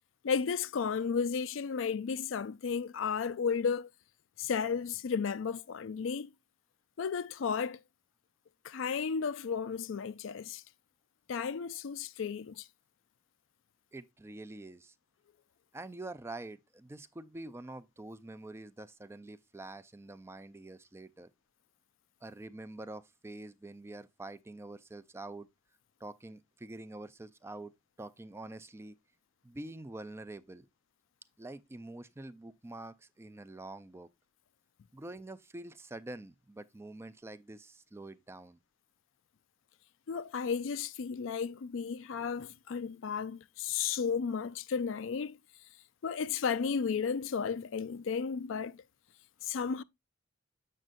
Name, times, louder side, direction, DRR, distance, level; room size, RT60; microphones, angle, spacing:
voice 1, 0.2-3.9 4.4-6.3 7.0-7.8 8.6-10.6 11.3-12.6 40.1-45.4 46.0-48.8 49.4-49.8, left 6 dB, 70° left, 0.4 m, -33 dB
voice 2, 13.9-14.9 15.7-21.3 22.2-25.5 26.0-27.7 28.0-29.0 29.4-30.7 31.4-34.1 34.9-38.6, right 2 dB, 15° right, 0.4 m, -46 dB
7.5 x 6.5 x 2.5 m
head